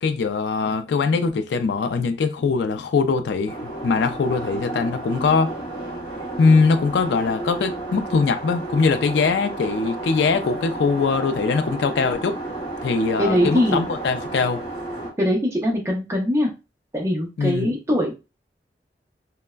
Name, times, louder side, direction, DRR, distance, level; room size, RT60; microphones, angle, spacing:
voice 1, 0.0-5.5 6.4-12.4 12.8-14.6 17.4-17.7, left 4 dB, 75° left, 0.3 m, -21 dB
sound 1, 3.5-15.1, right 2 dB, 30° left, 0.7 m, -32 dB
voice 2, 13.2-13.8 15.2-16.5 16.9-18.2, equal, 15° right, 0.5 m, -21 dB
3.2 x 2.0 x 2.2 m
head